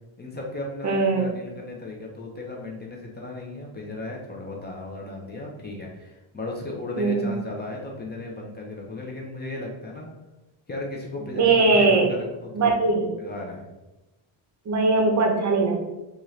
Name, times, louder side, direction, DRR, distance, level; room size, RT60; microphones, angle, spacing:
voice 1, 0.2-10.1 10.7-12.8 13.2-13.7, left 2 dB, 20° left, -1 dB, 0.5 m, -35 dB
voice 2, 0.8-1.3 7.0-7.3 11.3-12.1 12.5-13.1 14.7-15.8, right 3 dB, 35° right, 2 dB, 0.6 m, -20 dB
4.2 x 2.5 x 3.1 m, 1.0 s
cardioid pair, 155°, 49 cm